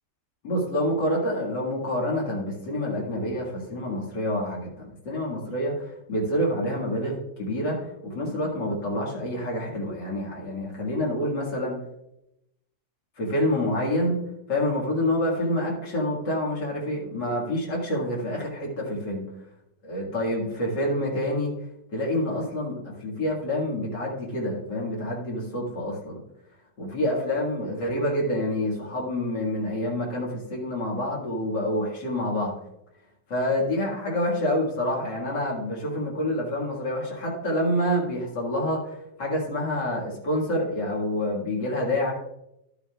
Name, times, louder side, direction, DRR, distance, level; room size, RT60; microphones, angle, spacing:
voice 1, 0.4-11.8 13.2-14.2 14.5-19.3 19.8-21.5 21.9-26.2 26.8-32.5 33.3-42.1, left 1 dB, 80° left, -3 dB, 2.6 m, -27 dB
12.0 x 8.4 x 2.3 m, 0.84 s
omnidirectional pair, 1.9 m